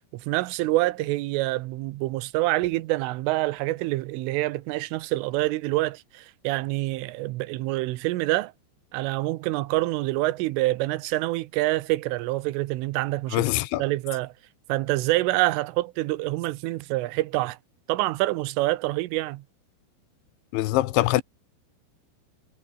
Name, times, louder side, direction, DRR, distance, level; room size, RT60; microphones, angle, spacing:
voice 1, 0.1-8.5 8.9-13.4 13.8-14.3 14.7-17.6 17.9-19.4, right 19 dB, 85° right, 3.4 m, -26 dB
voice 2, 13.3-13.8 20.5-21.2, left 17 dB, 75° left, 3.2 m, -23 dB
omnidirectional pair, 5.7 m